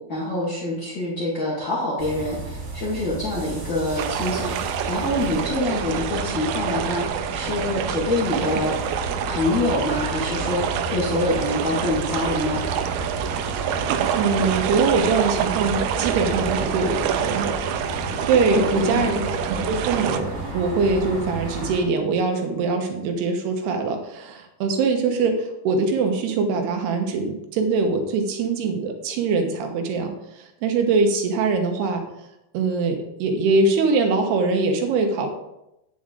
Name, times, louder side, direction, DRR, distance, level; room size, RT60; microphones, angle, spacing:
voice 1, 0.1-8.7 9.2-12.6 18.5-19.1, left 1 dB, 75° left, -6 dB, 1.0 m, -26 dB
sound 1, 2.0-21.8, right 1 dB, 40° right, 2.1 m, -32 dB
sound 2, 4.0-20.2, right 9 dB, 90° right, 2.9 m, -27 dB
voice 2, 14.1-17.5 18.3-32.0 32.5-35.3, right 4 dB, 70° right, 4 dB, 2.9 m, -23 dB
9.4 x 7.4 x 3.7 m, 0.87 s
omnidirectional pair, 5.2 m